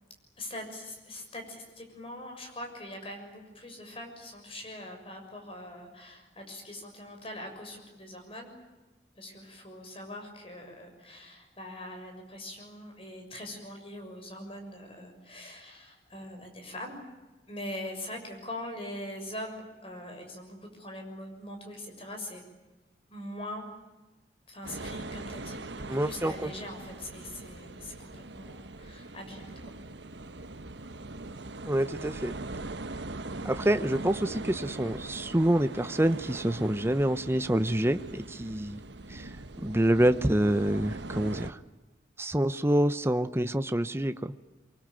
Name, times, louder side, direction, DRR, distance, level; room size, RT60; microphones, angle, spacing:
voice 1, 0.4-8.5 9.2-17.0 17.5-22.4 23.1-23.7 24.5-29.8, left 1 dB, 35° left, 4 dB, 6.6 m, -42 dB
sound 1, 24.6-41.5, right 2 dB, 90° right, 1.2 m, -41 dB
voice 2, 25.9-26.5 31.7-32.3 33.4-38.8 39.1-39.3 39.6-41.6 42.2-44.3, right 1 dB, 15° right, 11 dB, 0.8 m, -27 dB
24.5 x 23.0 x 9.1 m, 1.2 s
head